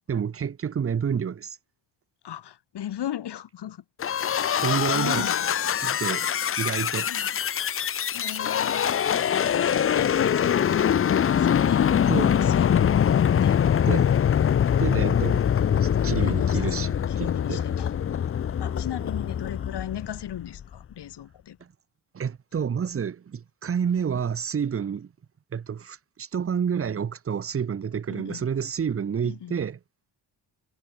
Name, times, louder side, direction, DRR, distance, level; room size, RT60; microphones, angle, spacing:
voice 1, 0.1-1.6 4.6-5.3 5.8-6.3 6.6-7.1 12.1-12.3 13.9-14.1 14.8-17.6 22.1-25.1 25.5-29.8, right 7 dB, 30° right, 0.7 m, -29 dB
voice 2, 2.2-3.8 4.9-5.8 7.1-7.8 8.1-13.6 16.2-17.9 18.6-21.6 28.1-28.4 29.2-29.6, left 11 dB, 65° left, 1.3 m, -38 dB
sound 1, 4.0-20.6, left 8 dB, 30° left, 0.4 m, -23 dB
cardioid pair, 85°, 43 cm